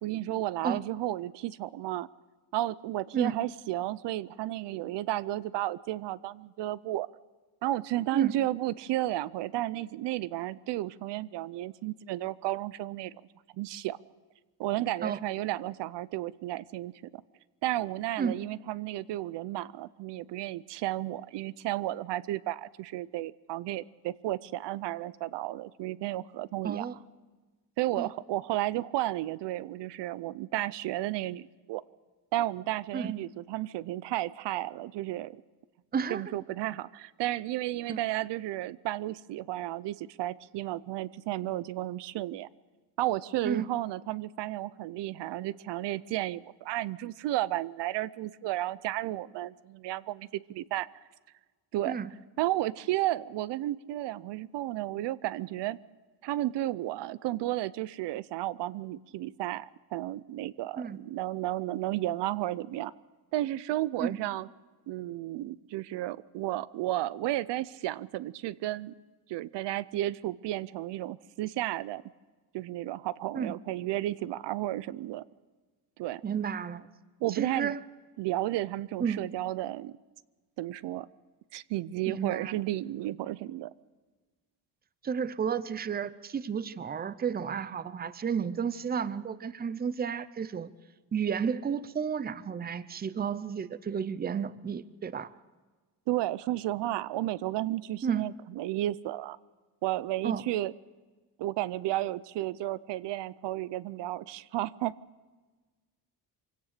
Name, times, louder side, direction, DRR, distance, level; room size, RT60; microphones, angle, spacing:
voice 1, 0.0-2.1 2.5-7.1 7.6-13.2 13.6-14.0 14.6-17.2 17.6-26.9 27.8-31.8 32.3-35.4 36.1-42.5 43.0-50.9 51.7-51.9 52.4-55.8 56.2-62.9 63.3-64.5 64.9-68.9 69.3-72.0 72.5-75.2 76.0-76.2 77.2-77.7 78.2-79.9 80.6-81.1 81.5-83.7 96.1-99.4 99.8-100.7 101.4-105.0, right 15 dB, 85° right, 18 dB, 0.6 m, -33 dB
voice 2, 26.6-27.0 28.0-28.1 32.9-33.1 35.9-36.2 37.9-38.0 43.4-43.6 51.8-52.1 60.8-61.0 64.0-64.2 73.3-73.5 76.2-76.9 77.3-77.8 79.0-79.2 82.1-82.5 85.0-90.7 91.1-95.3 98.0-98.3 100.2-100.4, right 7 dB, 25° right, 16 dB, 0.6 m, -32 dB
24.0 x 17.0 x 6.6 m, 1.3 s
cardioid pair, 140°, 41 cm